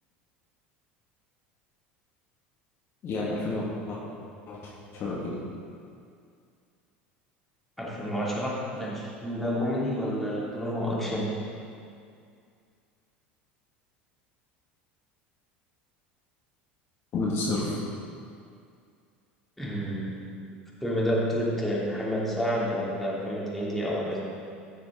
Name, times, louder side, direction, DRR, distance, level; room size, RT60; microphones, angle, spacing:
voice 1, 3.0-4.0 4.5-5.4 17.1-17.8, left 2 dB, 45° left, -5 dB, 2.1 m, -30 dB
voice 2, 7.8-11.4 19.6-20.2 20.8-24.2, equal, 5° left, -6 dB, 3.0 m, -29 dB
15.5 x 6.8 x 3.9 m, 2.3 s
figure-of-eight pair, 75°, 6 cm